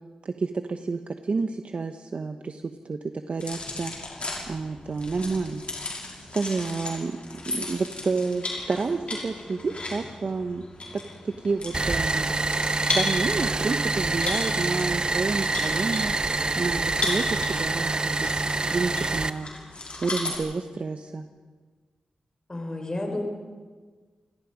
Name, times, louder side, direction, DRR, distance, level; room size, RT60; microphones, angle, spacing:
voice 1, 0.2-3.0 3.3-5.8 6.3-7.2 7.5-10.6 11.2-12.3 12.9-16.1 16.6-18.3 18.7-21.2, right 4 dB, 55° right, 7 dB, 1.1 m, -30 dB
sound 1, 3.4-20.4, left 2 dB, 50° left, 5.9 m, -36 dB
sound 2, 11.7-19.3, right 3 dB, 35° right, 0.9 m, -26 dB
voice 2, 22.5-23.2, left 2 dB, 30° left, 2 dB, 5.3 m, -31 dB
29.0 x 18.0 x 5.2 m, 1.4 s
cardioid pair, 65°, 2 cm